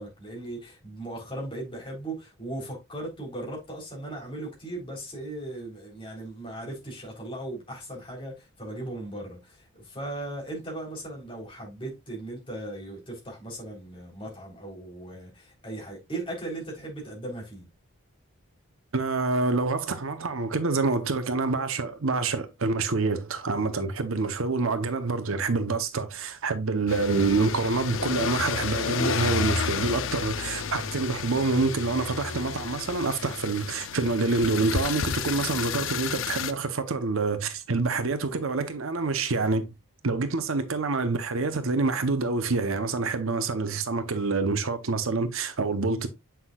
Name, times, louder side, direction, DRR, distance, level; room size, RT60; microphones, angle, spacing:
voice 1, 0.0-17.7, right 1 dB, 25° left, 3.6 m, -38 dB
voice 2, 18.9-39.7 40.0-46.1, right 3 dB, 70° right, 0.8 m, -27 dB
sound 1, 26.9-36.5, left 6 dB, 60° left, 0.6 m, -31 dB
7.9 x 5.8 x 2.3 m
head